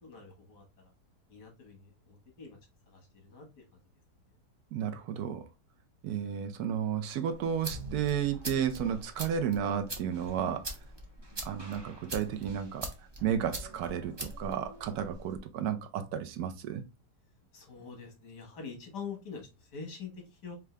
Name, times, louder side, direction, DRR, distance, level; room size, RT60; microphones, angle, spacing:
voice 1, 0.0-0.9 1.3-2.6 2.9-3.6 17.5-20.6, left 5 dB, 80° left, 2.0 m, -45 dB
voice 2, 4.7-5.4 6.0-10.7 11.4-12.9 13.2-16.8, right 8 dB, 70° right, 1.1 m, -32 dB
sound 1, 7.3-15.4, right 1 dB, 35° right, 0.4 m, -43 dB
4.6 x 2.5 x 3.2 m
omnidirectional pair, 1.8 m